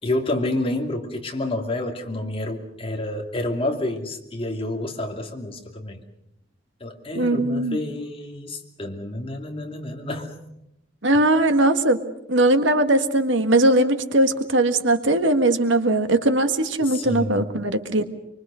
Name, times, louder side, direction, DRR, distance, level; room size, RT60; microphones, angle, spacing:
voice 1, 0.0-6.0 6.8-10.3 16.8-17.5, left 1 dB, 30° left, 3 dB, 2.7 m, -29 dB
voice 2, 7.1-7.8 11.0-12.0 12.3-18.0, right 1 dB, 85° right, 8 dB, 1.7 m, -20 dB
24.5 x 24.0 x 6.3 m, 0.82 s
head